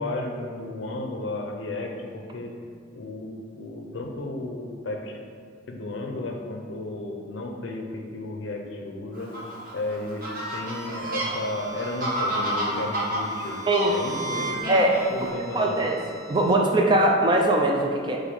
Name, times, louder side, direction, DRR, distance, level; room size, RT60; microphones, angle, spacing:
voice 1, 0.0-2.5 2.9-5.1 5.7-9.3 9.7-13.6 13.9-15.8, left 2 dB, 75° left, 2 dB, 0.5 m, -33 dB
Fowl, 9.1-15.3, equal, 50° right, 0.9 m, -31 dB
sound 1, 10.2-16.5, right 3 dB, 20° left, 0.7 m, -38 dB
voice 2, 15.5-16.0 16.3-18.2, right 1 dB, 25° right, 1 dB, 0.4 m, -21 dB
4.1 x 2.6 x 4.3 m, 2.3 s
head